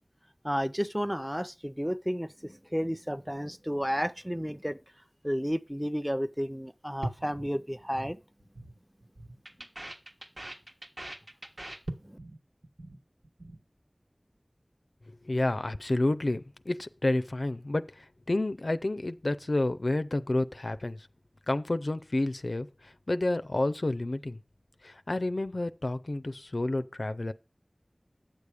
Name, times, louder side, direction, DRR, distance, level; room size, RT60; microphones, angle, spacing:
voice 1, 0.4-4.8 5.2-8.2 12.0-12.2, equal, 5° right, 0.6 m, -32 dB
sound 1, 7.0-8.1 8.4-8.7 9.0-12.4 12.6-13.0 13.2-13.6, right 1 dB, 70° right, 1.4 m, -41 dB
voice 2, 15.3-21.0 21.5-22.7 23.1-24.4 24.8-27.3, left 2 dB, 70° left, 0.4 m, -30 dB
8.9 x 6.9 x 4.9 m
wide cardioid pair, 40°, 0 cm